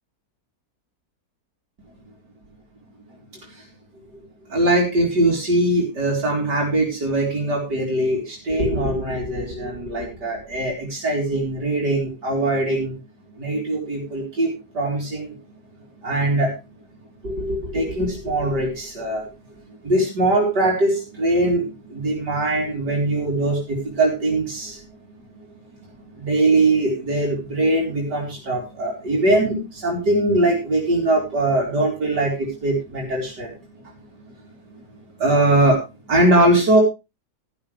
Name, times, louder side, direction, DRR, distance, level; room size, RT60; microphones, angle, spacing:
voice 1, 4.5-13.0 13.4-15.3 16.0-16.5 17.2-19.3 19.6-25.0 25.8-33.9 34.3-34.4 35.2-35.8 36.1-36.8, right 1 dB, 80° right, -2 dB, 4.3 m, -21 dB
15.0 x 11.5 x 3.3 m, 0.27 s
omnidirectional pair, 1.8 m